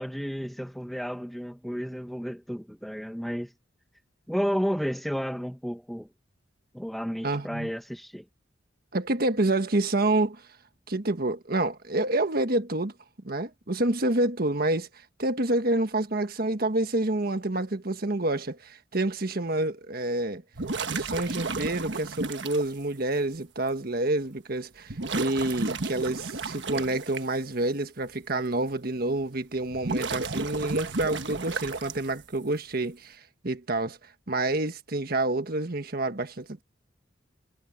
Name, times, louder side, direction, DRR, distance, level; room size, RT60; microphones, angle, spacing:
voice 1, 0.0-3.5 4.3-6.1 6.7-8.3, equal, ahead, 1.3 m, -32 dB
voice 2, 7.2-7.7 8.9-10.4 10.9-12.9 13.2-14.9 15.2-20.4 20.9-34.0 34.3-36.6, right 2 dB, 55° right, 1.5 m, -28 dB
sound 1, 20.5-22.7 23.7-23.8 24.9-27.2 29.6-32.2, right 3 dB, 70° right, 1.4 m, -32 dB
head